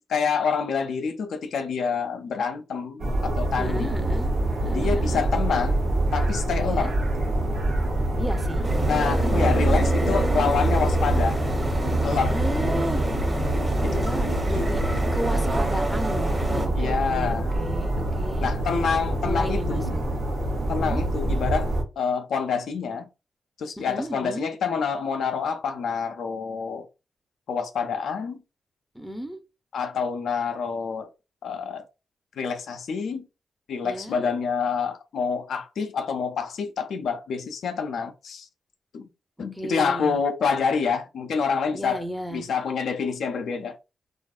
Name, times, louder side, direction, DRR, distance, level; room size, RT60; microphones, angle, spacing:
voice 1, 0.0-3.9 4.7-5.8 6.1-7.0 8.9-11.4 12.0-12.3 13.8-14.1 14.5-14.6 15.3-15.4 16.7-17.5 18.4-20.0 20.7-21.7 22.0-23.1 23.6-26.9 27.5-28.4 29.7-31.1 31.4-31.9 32.4-33.3 33.7-38.5 38.9-39.1 39.4-42.0 42.3-43.8, left 6 dB, 80° left, 0.4 m, -27 dB
sound 1, 3.0-21.8, right 1 dB, 75° right, 0.8 m, -26 dB
voice 2, 3.6-4.3 4.6-5.2 6.6-6.9 8.2-8.7 9.2-9.5 12.3-13.1 13.8-18.5 19.2-20.0 20.7-21.1 23.8-24.5 28.9-29.4 33.8-34.3 39.5-40.2 41.7-42.5, equal, 10° right, 0.6 m, -34 dB
sound 2, 8.6-16.7, right 1 dB, 30° right, 1.1 m, -26 dB
2.6 x 2.4 x 2.3 m
supercardioid pair, 40°, 0 cm